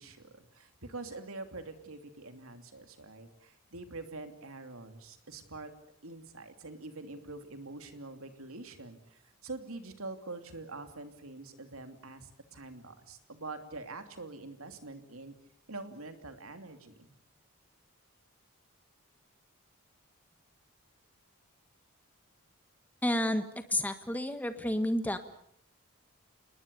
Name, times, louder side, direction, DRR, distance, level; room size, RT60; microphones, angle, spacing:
voice 1, 0.0-5.7 6.0-15.3 15.7-17.2, right 3 dB, 75° right, 7 dB, 2.9 m, -45 dB
voice 2, 23.0-25.2, left 1 dB, 5° left, 9 dB, 1.6 m, -30 dB
28.5 x 20.5 x 6.9 m, 0.67 s
head